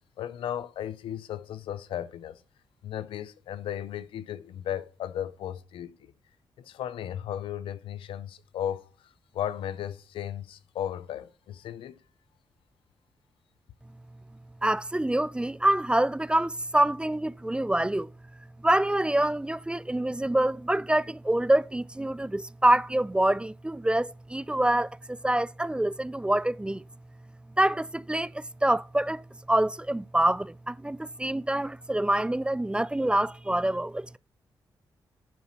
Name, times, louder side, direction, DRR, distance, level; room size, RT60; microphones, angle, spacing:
voice 1, 0.2-2.4 2.8-6.1 6.6-8.9 9.3-11.9, left 10 dB, 85° left, 0.5 m, -35 dB
voice 2, 14.6-18.1 18.6-26.8 27.6-34.2, right 1 dB, 10° right, 0.3 m, -26 dB
10.5 x 4.2 x 5.8 m
supercardioid pair, 55°, 9 cm